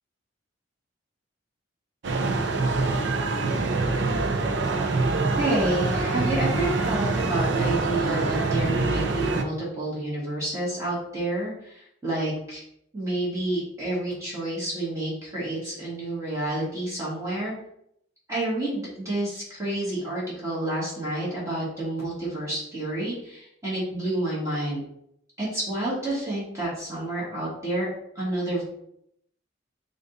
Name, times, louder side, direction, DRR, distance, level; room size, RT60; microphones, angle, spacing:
sound 1, 2.0-9.4, right 3 dB, 70° right, 0.5 m, -25 dB
voice 1, 5.4-12.6 12.9-17.5 18.3-24.8 25.4-27.9 28.1-28.6, right 1 dB, 15° right, -8 dB, 1.7 m, -29 dB
5.0 x 2.5 x 3.9 m, 0.74 s
head